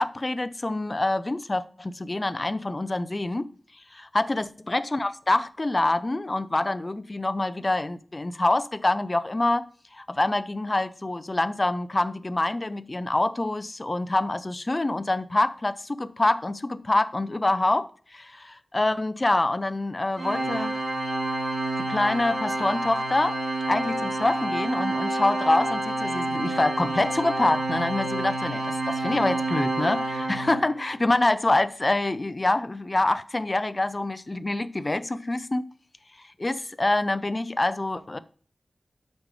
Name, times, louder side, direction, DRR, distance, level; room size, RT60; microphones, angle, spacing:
voice 1, 0.0-3.5 3.9-9.6 9.9-20.8 21.8-23.4 23.7-35.7 36.4-38.2, left 2 dB, 35° left, 0.4 m, -26 dB
Organ, 20.2-30.9, right 2 dB, 90° right, 1.8 m, -29 dB
6.1 x 5.1 x 3.2 m
wide cardioid pair, 75°, 0 cm